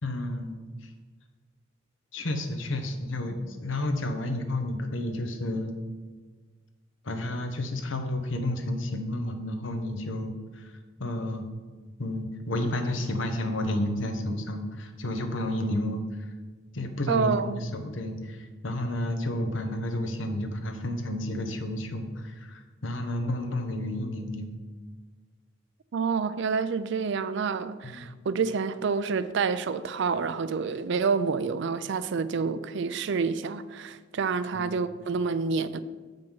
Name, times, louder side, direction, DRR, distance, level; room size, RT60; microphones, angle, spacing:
voice 1, 0.0-0.9 2.1-5.7 7.0-10.7 11.0-11.5 12.0-16.0 16.7-24.5 27.8-28.1 34.5-34.8, left 1 dB, 75° left, 1.0 m, -31 dB
voice 2, 17.1-17.6 25.9-35.8, right 5 dB, 65° right, 0.4 m, -28 dB
7.6 x 5.3 x 5.5 m
head